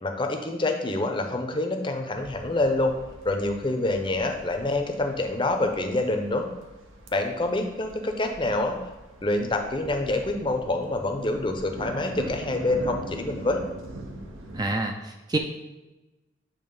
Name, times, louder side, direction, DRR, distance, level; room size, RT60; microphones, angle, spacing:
voice 1, 0.0-2.9 3.2-6.5 7.1-8.8 9.2-13.6, left 2 dB, 25° left, 4 dB, 0.6 m, -26 dB
sound 1, 2.2-14.7, right 1 dB, 80° right, 0.9 m, -43 dB
voice 2, 14.5-15.4, right 2 dB, 20° right, 3 dB, 0.4 m, -27 dB
8.7 x 3.0 x 5.3 m, 1.1 s
head